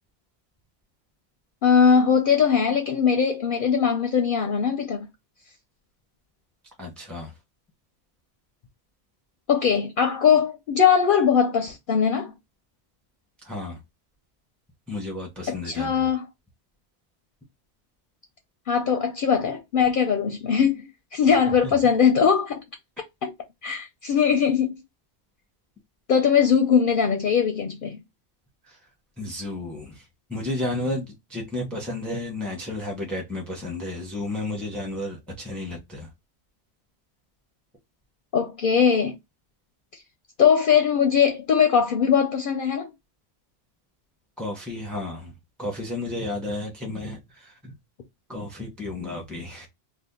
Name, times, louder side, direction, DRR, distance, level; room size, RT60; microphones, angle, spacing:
voice 1, 1.6-5.1 9.5-12.3 15.5-16.3 18.7-22.6 23.2-23.3 23.6-24.8 26.1-28.0 38.3-39.1 40.4-42.9, left 7 dB, 60° left, 0.7 m, -21 dB
voice 2, 6.8-7.3 13.4-13.8 14.9-16.1 21.3-21.4 21.6-21.7 28.6-28.8 29.2-36.1 44.4-45.3 45.6-47.7 48.3-49.7, left 2 dB, ahead, 0.9 m, -32 dB
2.7 x 2.4 x 3.6 m
omnidirectional pair, 1.1 m